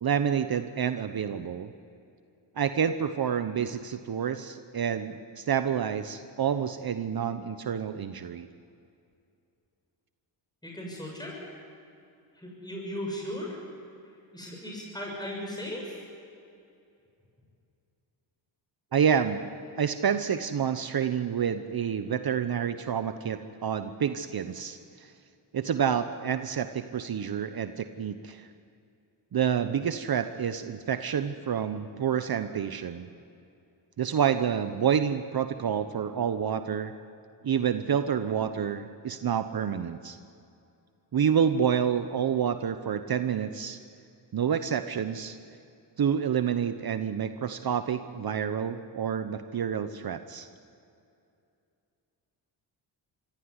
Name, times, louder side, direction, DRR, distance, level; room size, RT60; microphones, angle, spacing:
voice 1, 0.0-1.7 2.6-8.5 18.9-19.5 19.8-25.1 25.5-28.5 29.3-33.1 34.0-36.9 37.4-40.2 41.1-43.8 44.3-45.4 46.0-50.5, right 8 dB, 50° right, 10 dB, 1.1 m, -28 dB
voice 2, 10.6-11.4 12.3-13.6 14.3-16.0, left 1 dB, 10° left, -2 dB, 6.6 m, -37 dB
24.5 x 15.0 x 9.8 m, 2.6 s
cardioid pair, 65°, 47 cm